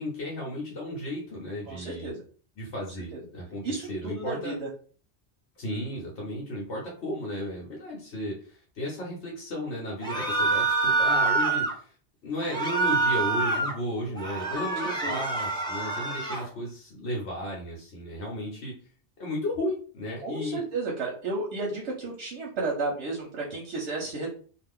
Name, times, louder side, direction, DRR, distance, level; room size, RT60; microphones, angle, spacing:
voice 1, 0.0-2.1 2.6-4.6 5.6-11.9 12.2-18.7 19.2-20.6, left 1 dB, 80° left, -3 dB, 1.2 m, -34 dB
voice 2, 1.7-2.2 3.6-4.7 14.5-14.7 15.0-15.2 20.2-24.3, right 3 dB, 85° right, -3 dB, 1.0 m, -32 dB
sound 1, 10.0-11.7 12.4-13.7 14.1-16.5, right 3 dB, 5° left, 0.7 m, -26 dB
2.5 x 2.4 x 3.5 m, 0.43 s
omnidirectional pair, 1.2 m